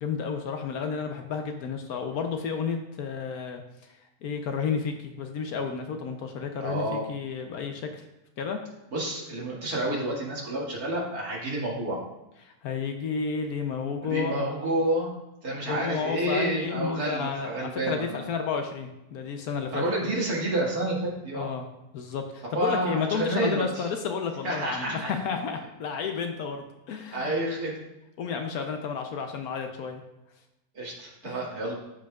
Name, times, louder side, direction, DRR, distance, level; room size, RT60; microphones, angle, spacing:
voice 1, 0.0-3.6 4.2-7.9 8.4-8.6 12.4-14.4 15.7-19.8 21.3-21.6 21.9-27.3 28.2-30.0 31.2-31.5, left 6 dB, 70° left, 5 dB, 1.1 m, -31 dB
voice 2, 6.6-7.0 8.9-12.0 14.0-15.1 15.4-18.2 19.7-21.5 22.5-23.9 24.4-25.1 27.1-27.7 30.7-31.7, right 1 dB, 60° right, -4 dB, 2.3 m, -29 dB
13.0 x 4.9 x 2.3 m, 0.93 s
omnidirectional pair, 1.8 m